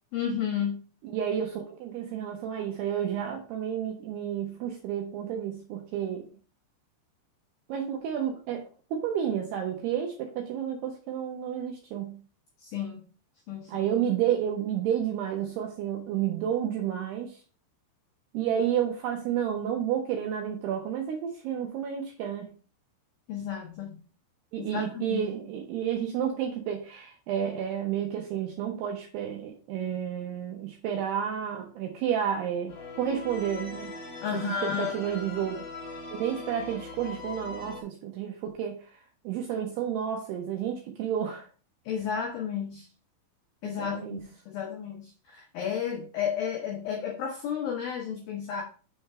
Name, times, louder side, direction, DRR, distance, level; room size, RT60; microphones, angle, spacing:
voice 1, 0.1-0.8 12.6-13.1 13.5-13.9 23.3-24.0 24.6-25.3 34.2-35.0 41.9-42.9 43.6-48.6, left 8 dB, 90° left, 1 dB, 2.0 m, -32 dB
voice 2, 1.1-6.3 7.7-12.2 13.7-17.4 18.3-22.5 24.5-33.9 34.3-35.7 36.2-38.8 39.2-41.5 43.8-44.2, right 9 dB, 80° right, 2 dB, 2.4 m, -31 dB
sound 1, 32.7-37.8, left 3 dB, 40° left, 2.5 m, -41 dB
6.9 x 3.4 x 5.4 m, 0.38 s
omnidirectional pair, 5.6 m